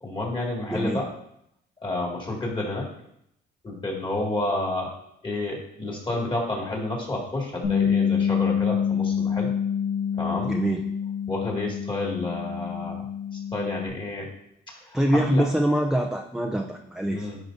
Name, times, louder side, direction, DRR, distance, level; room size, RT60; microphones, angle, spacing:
voice 1, 0.0-1.1 1.8-2.9 3.6-4.9 5.2-9.5 10.2-10.6 11.3-13.1 13.3-14.3 14.7-15.5 17.1-17.4, left 2 dB, 25° left, -2 dB, 2.2 m, -30 dB
voice 2, 0.7-1.0 10.4-10.8 14.9-17.3, right 1 dB, 5° right, 2 dB, 0.5 m, -24 dB
Bass guitar, 7.6-13.9, left 7 dB, 85° left, 2.3 m, -26 dB
10.5 x 4.8 x 2.7 m, 0.76 s
cardioid pair, 90°, 20 cm